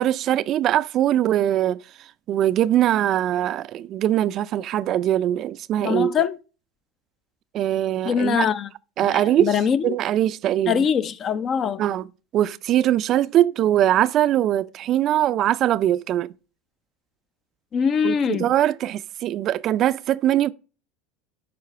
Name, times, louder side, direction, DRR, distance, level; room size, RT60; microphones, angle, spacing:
voice 1, 0.0-1.8 2.3-6.1 7.5-8.5 9.0-9.5 9.8-10.9 11.8-12.1 12.3-16.3 18.0-20.5, right 12 dB, 50° right, 0.4 m, -21 dB
voice 2, 5.8-6.4 8.1-8.7 9.1-10.0 10.7-11.8 17.7-18.5, left 7 dB, 40° left, 0.6 m, -23 dB
12.0 x 4.8 x 3.3 m
hypercardioid pair, 95°, 0 cm